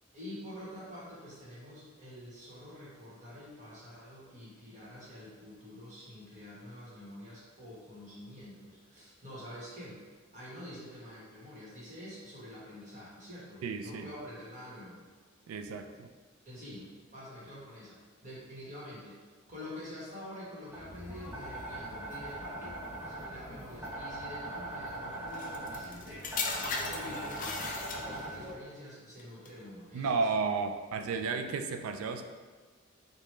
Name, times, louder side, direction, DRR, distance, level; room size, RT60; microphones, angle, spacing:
voice 1, 0.1-10.0 10.3-15.0 16.4-30.4, left 1 dB, 35° right, -7 dB, 1.3 m, -47 dB
voice 2, 13.6-14.1 15.5-16.1 29.9-32.2, right 4 dB, 85° right, 7 dB, 0.3 m, -33 dB
sound 1, 20.7-28.5, right 1 dB, 10° right, 0.9 m, -41 dB
sound 2, 25.3-28.4 29.2-29.5, left 4 dB, 40° left, 0.4 m, -37 dB
4.8 x 2.3 x 3.2 m, 1.4 s
head